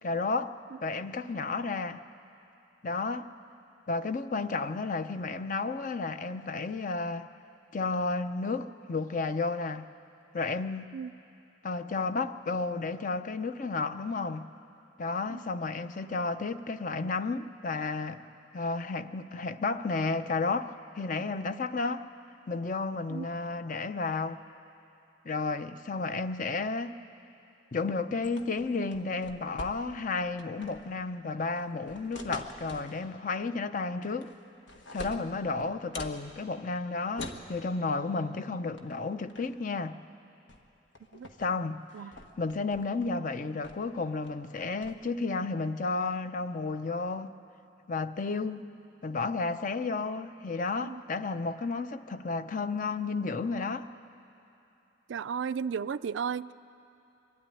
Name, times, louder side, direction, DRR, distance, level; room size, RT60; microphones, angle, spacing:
voice 1, 0.0-2.0 2.8-3.3 3.9-7.3 7.7-9.9 10.3-10.9 11.6-14.4 15.0-18.2 18.5-22.1 22.5-24.4 25.2-27.0 27.7-34.3 34.9-40.0 41.4-41.8 42.4-47.3 47.9-48.7 49.0-53.9, left 3 dB, 45° left, 0.6 m, -32 dB
sound 1, 28.2-30.1 30.4-30.9 31.6-33.0 34.0-34.4 34.7-36.2 37.2-37.5 38.8-39.0 39.3-39.6 40.5-40.6 41.0-41.5 41.9-43.1 43.6-43.9 44.2-44.9, left 2 dB, 80° left, 1.4 m, -44 dB
voice 2, 55.1-56.5, right 6 dB, 85° right, 0.4 m, -34 dB
23.5 x 12.5 x 9.9 m
head